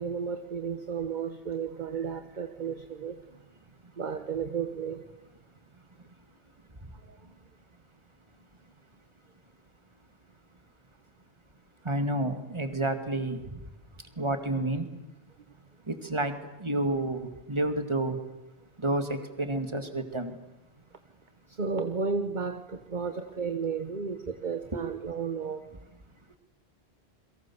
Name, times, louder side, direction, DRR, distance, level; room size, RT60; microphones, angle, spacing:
voice 1, 0.0-3.4 4.0-5.1 7.1-7.2 21.5-25.6, right 5 dB, 45° right, 1.3 m, -33 dB
voice 2, 11.8-13.7 14.2-14.9 15.9-18.2 18.8-20.4 24.7-24.8, right 1 dB, 25° right, 2.3 m, -30 dB
29.5 x 23.0 x 7.2 m
omnidirectional pair, 1.1 m